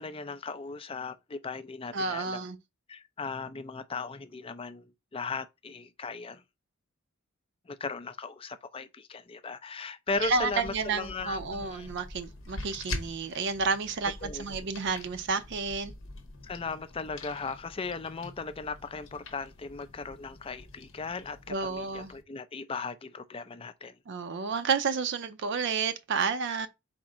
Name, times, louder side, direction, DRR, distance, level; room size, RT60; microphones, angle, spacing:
voice 1, 0.0-2.4 2.9-6.4 7.7-11.9 14.2-14.4 16.4-23.9, left 4 dB, 25° left, 0.4 m, -37 dB
voice 2, 1.9-2.6 10.2-15.9 21.5-22.1 24.1-26.7, right 5 dB, 50° right, 0.5 m, -30 dB
sound 1, 10.1-22.2, left 2 dB, 60° left, 0.8 m, -45 dB
4.2 x 2.6 x 4.8 m
head